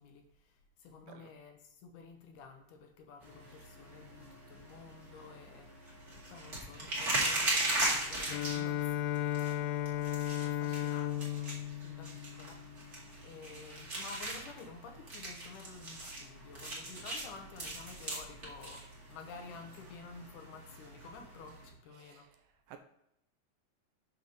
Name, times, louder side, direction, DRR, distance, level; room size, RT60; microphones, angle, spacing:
voice 1, 0.0-11.5 11.8-22.3, left 4 dB, 70° left, 4 dB, 2.2 m, -52 dB
sound 1, 3.2-21.7, right 2 dB, 30° right, 1.5 m, -39 dB
Bowed string instrument, 8.3-13.0, left 12 dB, 85° left, 2.3 m, -35 dB
voice 2, 21.9-22.8, right 10 dB, 80° right, 7 dB, 2.1 m, -55 dB
7.2 x 6.2 x 3.9 m, 0.79 s
omnidirectional pair, 4.1 m